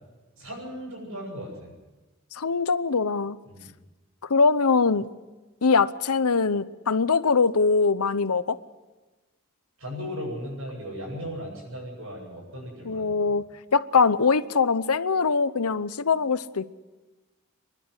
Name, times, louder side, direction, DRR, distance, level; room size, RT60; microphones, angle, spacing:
voice 1, 0.4-1.7 3.5-3.7 9.8-13.3, equal, 70° right, -6 dB, 8.0 m, -37 dB
voice 2, 2.3-3.4 4.3-5.1 5.6-8.6 12.8-13.4 13.7-16.8, left 4 dB, 90° left, 14 dB, 0.8 m, -22 dB
29.0 x 11.5 x 9.8 m, 1.2 s
head